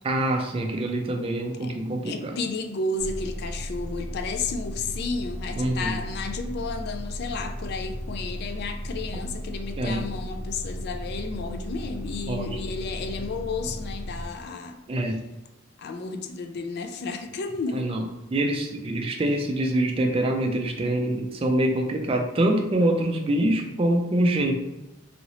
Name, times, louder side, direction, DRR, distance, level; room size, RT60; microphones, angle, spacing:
voice 1, 0.0-2.4 5.6-6.0 9.8-10.1 12.3-12.6 14.9-15.2 17.7-18.0 18.3-24.5, right 1 dB, 25° right, 3 dB, 0.4 m, -25 dB
voice 2, 2.0-14.8 15.8-17.9, left 3 dB, 50° left, 6 dB, 0.3 m, -32 dB
sound 1, 3.0-14.3, equal, 80° left, 1.0 m, -35 dB
3.0 x 2.8 x 2.7 m, 0.96 s
head